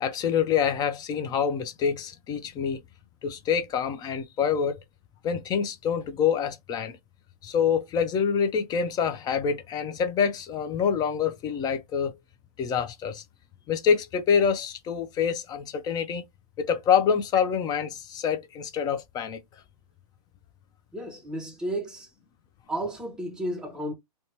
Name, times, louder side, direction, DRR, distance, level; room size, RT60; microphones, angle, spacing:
voice 1, 0.0-2.8 3.2-4.8 5.2-7.0 7.4-12.1 12.6-13.2 13.7-16.2 16.6-19.4, left 7 dB, 20° left, 0.4 m, -26 dB
voice 2, 20.9-22.1 22.7-23.9, right 1 dB, 5° right, 0.7 m, -32 dB
2.8 x 2.2 x 2.7 m
hypercardioid pair, 130°, 20 cm